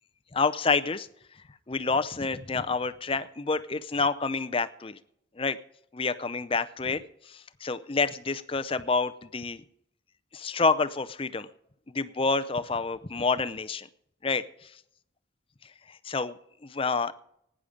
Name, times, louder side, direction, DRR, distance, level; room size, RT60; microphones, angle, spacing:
voice 1, 0.3-1.1 1.7-5.0 5.4-5.6 5.9-9.6 10.3-11.5 11.9-13.9 14.2-14.7 15.9-17.1, left 4 dB, 25° left, 13 dB, 0.5 m, -28 dB
17.0 x 10.0 x 5.1 m, 0.75 s
head